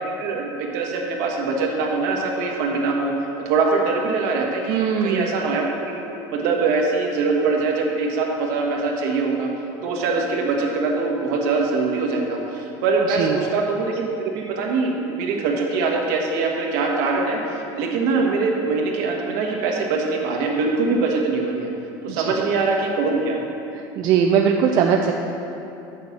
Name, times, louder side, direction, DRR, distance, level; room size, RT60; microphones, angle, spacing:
voice 1, 0.2-3.1 3.4-6.0 6.3-9.5 9.8-14.1 14.3-17.4 17.7-21.7 22.0-23.4, right 4 dB, 70° right, 0 dB, 1.4 m, -23 dB
voice 2, 4.7-5.3 13.1-13.4 22.1-22.3 23.7-25.1, right 7 dB, 40° right, 2 dB, 0.4 m, -20 dB
6.6 x 6.2 x 7.0 m, 2.8 s
cardioid pair, 165°, 10 cm